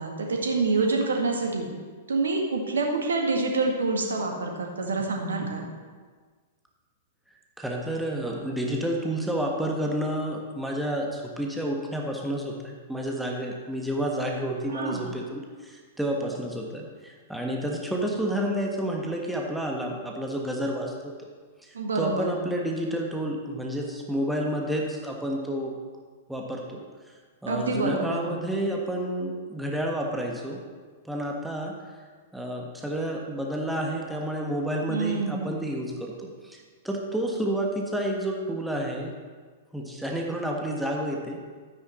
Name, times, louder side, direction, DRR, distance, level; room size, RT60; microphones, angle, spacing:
voice 1, 0.0-1.7 2.1-5.7 14.7-15.0 21.7-22.4 27.5-28.3 34.9-35.5, right 3 dB, 70° right, 1 dB, 1.8 m, -27 dB
voice 2, 7.6-20.9 21.6-25.8 26.3-26.8 27.4-30.6 31.0-31.8 32.3-36.6 36.8-39.1 39.7-41.4, right 1 dB, 5° right, -1 dB, 1.4 m, -30 dB
12.5 x 9.4 x 3.1 m, 1.5 s
figure-of-eight pair, 100°, 0 cm